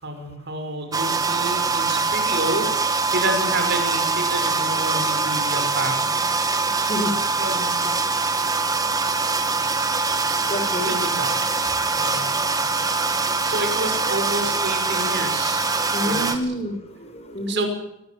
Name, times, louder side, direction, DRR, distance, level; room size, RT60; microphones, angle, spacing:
voice 1, 0.0-6.1 7.4-7.7 10.8-11.4 11.9-12.8 13.4-15.7 16.0-16.5 17.5-17.7, right 2 dB, 55° right, 6 dB, 5.9 m, -29 dB
sound 1, 0.9-16.4, right 4 dB, 20° right, 2.3 m, -23 dB
voice 2, 6.8-7.1 10.5-10.9 15.9-17.7, left 1 dB, 30° left, 7 dB, 5.2 m, -28 dB
23.5 x 20.0 x 7.6 m, 0.85 s
head